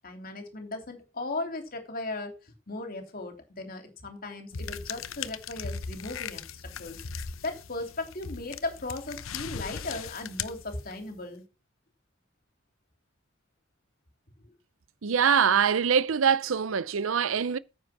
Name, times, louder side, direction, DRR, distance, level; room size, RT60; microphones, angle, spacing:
voice 1, 0.0-11.4 14.4-14.5, left 2 dB, 45° left, 3.0 m, -37 dB
sound 1, 4.5-11.2, left 6 dB, 80° left, 0.8 m, -38 dB
voice 2, 15.0-17.6, right 7 dB, 80° right, 0.6 m, -24 dB
9.8 x 7.4 x 5.9 m
head